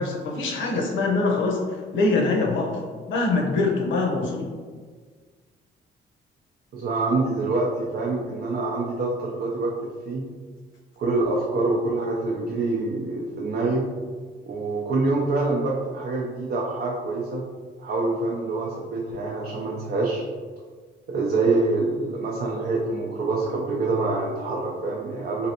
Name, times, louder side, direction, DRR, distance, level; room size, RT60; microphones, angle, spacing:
voice 1, 0.0-2.8 3.1-4.5, left 3 dB, 75° left, 0 dB, 0.7 m, -24 dB
voice 2, 6.7-10.2 11.0-13.8 14.5-17.4 17.8-20.2 21.1-25.5, right 3 dB, 55° right, -3 dB, 0.5 m, -26 dB
3.0 x 2.6 x 2.8 m, 1.5 s
cardioid pair, 90°, 20 cm